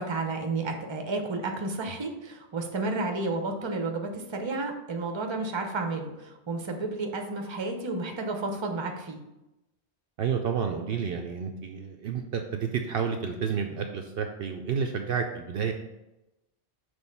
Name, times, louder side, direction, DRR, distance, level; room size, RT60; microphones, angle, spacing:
voice 1, 0.0-9.2, right 3 dB, 30° right, 4 dB, 0.7 m, -31 dB
voice 2, 10.2-15.7, right 6 dB, 65° right, 4 dB, 0.7 m, -30 dB
6.2 x 3.2 x 5.3 m, 0.95 s
omnidirectional pair, 1.2 m